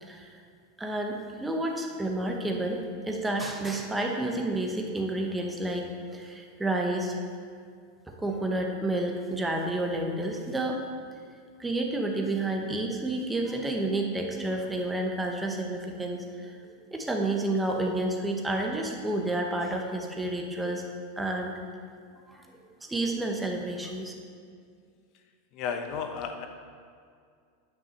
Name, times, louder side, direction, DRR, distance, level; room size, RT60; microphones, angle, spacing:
voice 1, 0.0-0.3 0.8-7.2 8.1-10.8 11.6-16.6 16.9-20.8 21.2-21.6 22.3-22.4 22.8-24.1, right 2 dB, 5° right, 1 dB, 0.9 m, -30 dB
voice 2, 25.5-26.5, left 6 dB, 40° left, 6 dB, 0.9 m, -33 dB
9.9 x 6.0 x 6.5 m, 2.2 s
supercardioid pair, 165°, 0 cm